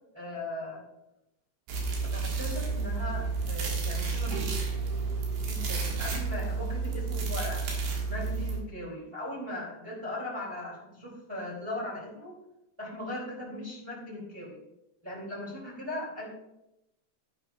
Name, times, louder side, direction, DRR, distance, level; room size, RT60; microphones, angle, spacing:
voice 1, 0.1-0.8 2.1-4.5 5.2-7.6 8.1-12.3 12.8-14.6 15.0-16.3, left 1 dB, 10° right, -5 dB, 2.0 m, -38 dB
sound 1, 1.7-8.6, right 4 dB, 70° right, 3.6 m, -31 dB
12.0 x 9.8 x 2.4 m, 0.87 s
omnidirectional pair, 4.8 m